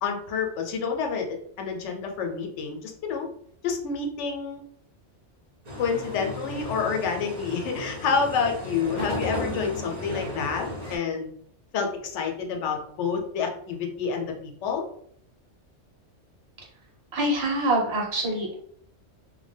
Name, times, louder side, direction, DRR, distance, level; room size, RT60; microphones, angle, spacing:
voice 1, 0.0-3.3 3.6-4.6 5.8-11.3 11.7-14.8, left 5 dB, 75° left, 3 dB, 0.9 m, -28 dB
sound 1, 5.7-11.0, left 1 dB, 40° right, 0.8 m, -34 dB
voice 2, 17.1-18.5, right 1 dB, 65° right, -1 dB, 1.1 m, -25 dB
2.2 x 2.1 x 3.3 m, 0.64 s
omnidirectional pair, 1.2 m